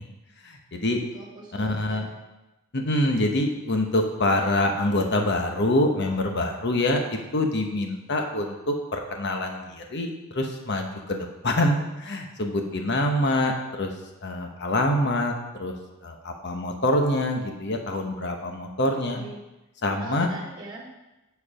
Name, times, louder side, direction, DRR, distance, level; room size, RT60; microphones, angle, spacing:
voice 1, 0.4-1.0 1.5-2.1 2.7-13.9 14.2-15.3 15.6-15.7 16.0-19.2 19.8-20.3, left 1 dB, 55° left, 3 dB, 1.1 m, -25 dB
voice 2, 1.1-2.0 19.1-19.4 20.0-20.9, right 1 dB, 20° right, -7 dB, 1.9 m, -41 dB
9.2 x 4.7 x 5.0 m, 1.0 s
head